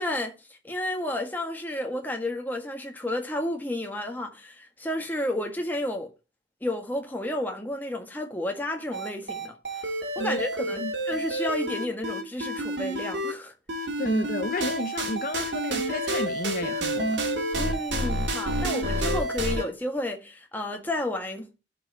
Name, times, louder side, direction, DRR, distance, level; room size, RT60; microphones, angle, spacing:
voice 1, 0.0-6.1 6.6-13.5 17.6-21.5, left 1 dB, 10° left, 1.6 m, -31 dB
sound 1, 8.9-13.3 13.7-19.6, right 1 dB, 75° right, 2.5 m, -29 dB
voice 2, 14.0-17.2, left 2 dB, 45° left, 0.7 m, -32 dB
15.5 x 5.4 x 2.8 m
head